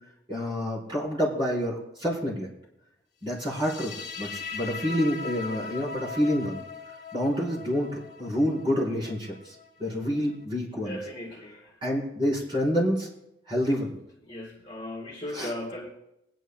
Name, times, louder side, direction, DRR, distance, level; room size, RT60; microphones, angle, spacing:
voice 1, 0.3-2.5 3.2-6.6 7.1-9.5 9.8-11.0 11.8-13.1 13.5-14.0 15.3-15.5, equal, 25° right, -5 dB, 4.3 m, -28 dB
sound 1, 3.4-10.4, left 4 dB, 60° left, 1.6 m, -40 dB
voice 2, 10.7-11.8 14.2-15.9, left 1 dB, 25° left, -3 dB, 2.0 m, -37 dB
20.5 x 10.5 x 2.3 m, 0.81 s
head